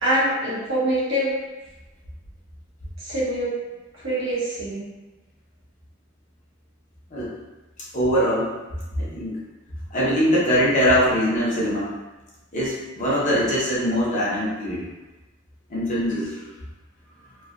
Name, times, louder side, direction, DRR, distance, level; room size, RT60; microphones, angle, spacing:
voice 1, 0.0-1.4 3.0-3.5 4.0-4.9, right 1 dB, 65° right, -9 dB, 1.3 m, -24 dB
voice 2, 7.9-8.5 9.0-9.4 9.9-11.9 12.5-14.8 15.7-16.3, equal, 40° left, -8 dB, 0.9 m, -22 dB
3.1 x 2.4 x 2.5 m, 1.1 s
head